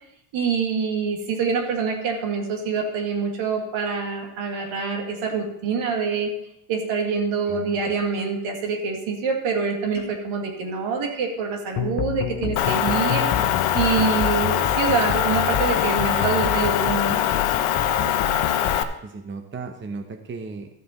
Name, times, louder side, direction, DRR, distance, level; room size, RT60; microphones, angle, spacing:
voice 1, 0.3-6.3 6.7-13.3 13.7-17.3, right 5 dB, 70° right, 3 dB, 2.1 m, -25 dB
voice 2, 7.5-7.8 13.4-13.5 19.0-20.7, right 4 dB, 25° right, 5 dB, 0.9 m, -35 dB
sound 1, 9.9-10.3 14.9-15.1, right 5 dB, 55° right, 2.5 m, -40 dB
sound 2, 11.8-18.8, left 11 dB, 60° left, 1.0 m, -29 dB
Motor vehicle (road) / Engine, 12.6-18.8, left 10 dB, 85° left, 0.9 m, -23 dB
13.0 x 6.8 x 4.3 m, 0.81 s
cardioid pair, 115°, 49 cm